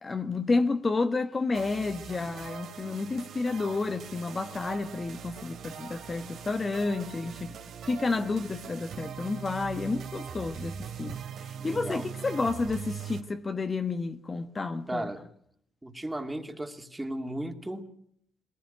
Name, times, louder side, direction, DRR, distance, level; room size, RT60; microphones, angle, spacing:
voice 1, 0.0-7.6 7.8-15.1, left 3 dB, 30° left, 1.3 m, -30 dB
sound 1, 1.5-13.2, right 7 dB, 70° right, 3.0 m, -41 dB
voice 2, 11.6-12.1 14.9-15.2 15.8-17.9, right 1 dB, 10° right, 2.7 m, -35 dB
21.0 x 20.0 x 9.2 m
cardioid pair, 90°, 0 cm